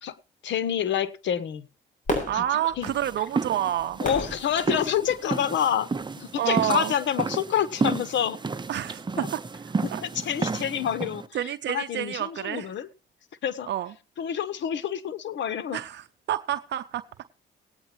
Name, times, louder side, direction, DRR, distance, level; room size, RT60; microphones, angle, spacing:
voice 1, 0.4-1.7 2.3-2.4 2.8-2.9 4.0-5.9 6.2-8.4 9.2-9.3 9.8-11.2 11.7-12.9 13.4-13.7 14.2-15.8, left 9 dB, 65° left, 12 dB, 1.2 m, -27 dB
Fireworks, 2.1-5.4 6.0-6.1, left 1 dB, 40° left, 7.0 m, -34 dB
voice 2, 2.3-4.0 6.4-6.9 8.7-9.4 9.8-10.0 11.3-12.7 13.7-13.9 15.7-17.0, right 11 dB, 65° right, 10 dB, 0.6 m, -28 dB
sound 1, 2.8-11.3, right 4 dB, 25° right, 0.9 m, -32 dB
18.5 x 9.1 x 3.0 m, 0.32 s
cardioid pair, 90°, 20 cm